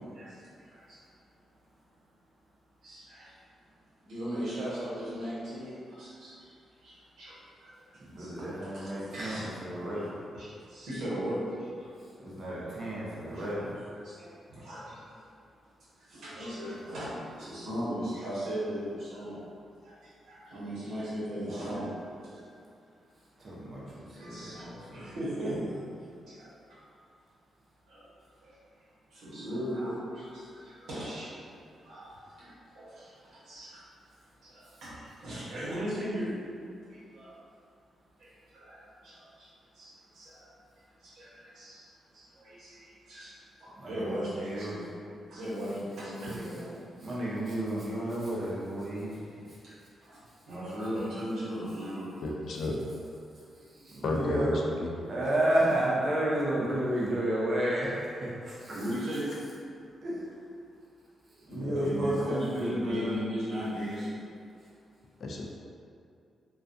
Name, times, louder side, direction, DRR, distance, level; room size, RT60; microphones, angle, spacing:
voice 1, 2.8-3.3 4.0-6.5 6.8-7.4 7.6-7.7 8.2-9.5 9.9-10.0 10.4-11.9 13.3-13.4 14.0-15.2 16.1-19.4 19.8-22.4 24.0-25.8 26.3-26.8 27.9-28.0 28.4-28.5 29.1-31.5 31.8-33.8 34.4-36.3 36.9-37.4 38.2-39.5 39.7-40.5 41.0-41.8 42.1-43.3 43.6-44.9 45.3-46.7 49.6-49.8 50.0-50.2 50.5-52.3 58.7-59.3 61.8-64.2, equal, 80° right, -10 dB, 0.9 m, -37 dB
voice 2, 8.0-10.1 12.2-13.8 23.4-25.1 43.8-44.8 46.2-46.4 47.0-49.2 53.7-54.6 55.1-58.8 60.0-60.2 61.5-63.1, right 1 dB, 40° right, -6 dB, 0.6 m, -31 dB
voice 3, 52.2-52.7 54.0-54.9 61.5-62.1 65.2-65.5, left 2 dB, 60° left, 0 dB, 0.3 m, -33 dB
2.3 x 2.2 x 2.5 m, 2.4 s
cardioid pair, 130°, 0 cm